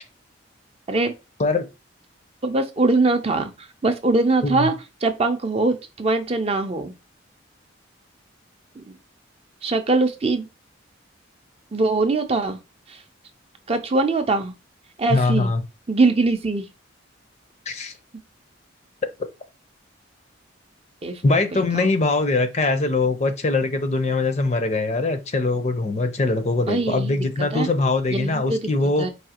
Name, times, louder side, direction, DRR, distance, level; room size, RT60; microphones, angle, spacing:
voice 1, 2.4-4.7 5.0-6.9 8.8-8.9 9.6-10.5 11.7-12.6 12.9-13.0 13.7-14.5 15.0-15.5 15.9-16.7 21.0-21.2 21.5-21.9 26.7-27.7 28.1-29.1, right 3 dB, 30° right, 0.4 m, -22 dB
voice 2, 15.1-15.6 17.7-17.9 21.2-29.1, left 3 dB, 35° left, 0.5 m, -22 dB
4.8 x 2.7 x 2.8 m
head